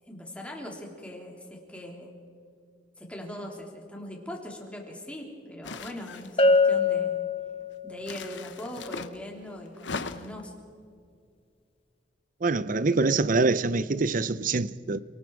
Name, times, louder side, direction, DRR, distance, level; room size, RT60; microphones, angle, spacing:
voice 1, 0.1-2.1 3.0-7.1 7.8-10.5, left 1 dB, 5° left, 3.4 m, -40 dB
sound 1, 5.6-6.6 8.0-9.2 9.7-10.5, left 4 dB, 85° left, 1.0 m, -38 dB
Bell, 6.4-8.0, left 3 dB, 30° left, 1.5 m, -23 dB
voice 2, 12.4-15.0, right 3 dB, 45° right, 0.6 m, -25 dB
30.0 x 19.0 x 4.7 m
head